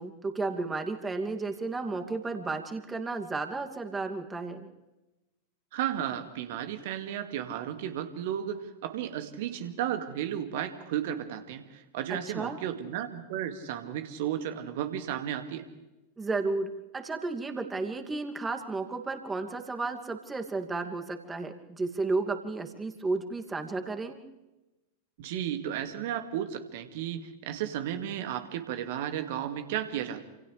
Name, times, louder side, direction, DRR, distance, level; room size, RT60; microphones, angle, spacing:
voice 1, 0.0-4.7 12.1-12.6 16.2-24.2, right 3 dB, 15° right, 5 dB, 2.6 m, -33 dB
voice 2, 5.7-15.7 25.2-30.3, right 10 dB, 50° right, 8 dB, 2.2 m, -34 dB
28.5 x 28.0 x 3.4 m, 1.0 s
figure-of-eight pair, 90°, 0 cm